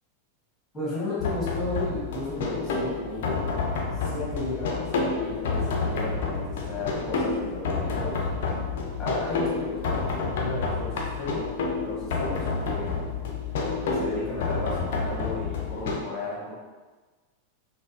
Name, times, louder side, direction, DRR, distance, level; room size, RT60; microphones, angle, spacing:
voice 1, 0.7-3.4 3.9-8.3 9.0-11.5 11.8-13.1 13.9-16.5, left 2 dB, 15° left, -8 dB, 1.1 m, -34 dB
sound 1, 1.2-16.0, left 4 dB, 55° left, 0.4 m, -29 dB
3.8 x 2.0 x 2.4 m, 1.3 s
figure-of-eight pair, 90°, 0 cm